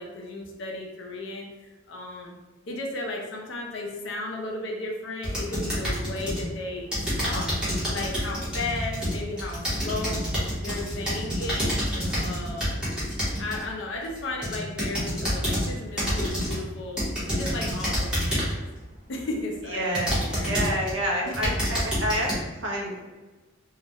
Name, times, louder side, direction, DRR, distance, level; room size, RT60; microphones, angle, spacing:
voice 1, 0.0-1.5 1.9-2.3 2.7-7.5 7.9-10.2 10.6-12.8 13.2-17.0 17.3-18.6 19.1-20.7 21.2-21.6, left 2 dB, 60° left, 0 dB, 0.4 m, -35 dB
sound 1, 5.2-6.5 6.9-13.6 14.2-15.7 16.0-16.6 17.0-18.6 19.2-19.3 19.9-20.9 21.3-22.3, equal, 5° right, 0.7 m, -28 dB
voice 2, 19.7-23.0, equal, 60° right, -2 dB, 0.5 m, -29 dB
2.2 x 2.0 x 2.7 m, 1.2 s
head